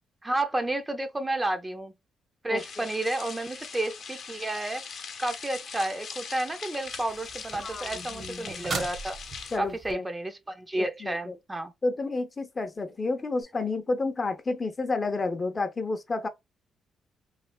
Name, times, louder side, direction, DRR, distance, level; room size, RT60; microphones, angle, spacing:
voice 1, 0.2-1.9 2.4-4.8 5.2-9.2 9.6-11.7, right 2 dB, 15° right, 0.6 m, -31 dB
voice 2, 2.5-2.9 7.6-8.7 9.5-10.1 10.8-11.4 11.8-16.3, left 3 dB, 30° left, 0.6 m, -31 dB
sound 1, 2.6-9.6, left 6 dB, 55° left, 0.8 m, -41 dB
sound 2, 6.9-9.9 13.4-13.5, right 4 dB, 45° right, 0.9 m, -39 dB
3.2 x 2.8 x 2.2 m
cardioid pair, 90°, 0 cm